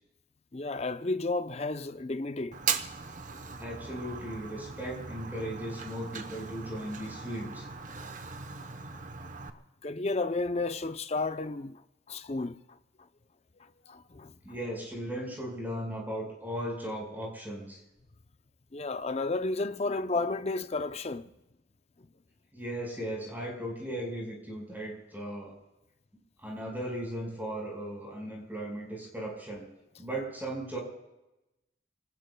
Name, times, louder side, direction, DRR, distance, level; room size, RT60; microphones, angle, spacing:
voice 1, 0.5-2.6 8.0-8.1 9.8-11.8 12.1-12.6 13.9-14.3 18.7-21.3, left 3 dB, 35° left, 0.6 m, -32 dB
Fire, 2.5-9.5, right 6 dB, 40° right, 0.9 m, -38 dB
voice 2, 3.6-7.7 14.4-17.8 22.5-25.6 26.4-29.6 30.0-30.8, right 1 dB, 10° right, 5.0 m, -37 dB
29.5 x 19.5 x 2.3 m
head